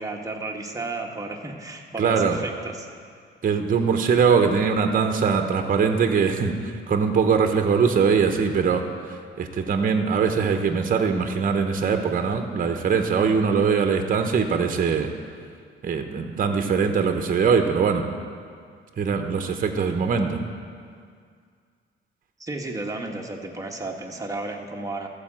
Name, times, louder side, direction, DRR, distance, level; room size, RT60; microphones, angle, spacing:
voice 1, 0.0-2.9 22.4-25.1, right 2 dB, 15° right, 1 dB, 1.3 m, -33 dB
voice 2, 2.0-2.4 3.4-15.1 15.8-18.0 19.0-20.4, right 6 dB, 45° right, 6 dB, 0.9 m, -22 dB
14.0 x 4.9 x 7.4 m, 2.1 s
cardioid pair, 90°, 20 cm